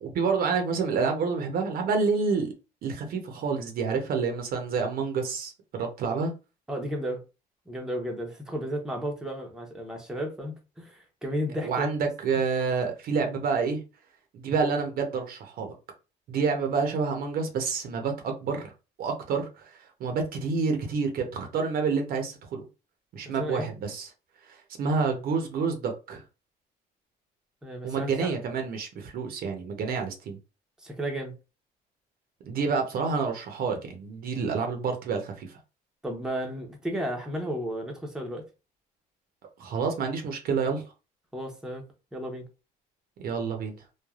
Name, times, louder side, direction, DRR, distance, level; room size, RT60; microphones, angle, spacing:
voice 1, 0.0-2.5 2.8-6.3 11.6-13.8 14.3-15.7 16.3-18.7 19.0-19.5 20.0-22.6 23.1-24.1 24.5-26.2 27.8-30.4 32.4-35.5 39.6-40.8 43.2-43.8, right 5 dB, 60° right, 0.8 m, -28 dB
voice 2, 6.7-7.2 7.7-12.1 23.4-23.7 27.6-28.3 30.8-31.3 36.0-38.4 41.3-41.8 42.1-42.4, equal, 5° right, 0.7 m, -33 dB
3.2 x 2.2 x 2.4 m
cardioid pair, 110°, 17 cm